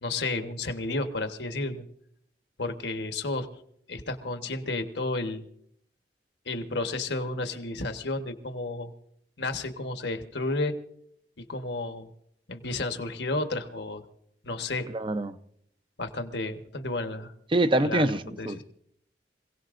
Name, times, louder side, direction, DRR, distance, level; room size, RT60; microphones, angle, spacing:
voice 1, 0.0-1.8 2.6-3.5 3.9-5.4 6.4-8.9 9.4-10.7 11.5-12.1 12.5-14.0 14.4-14.9 16.0-17.3 17.8-18.0 18.4-18.6, left 2 dB, 75° left, 1.3 m, -32 dB
voice 2, 14.9-15.4 17.5-18.6, right 1 dB, 30° right, 0.6 m, -25 dB
26.5 x 17.5 x 2.6 m
head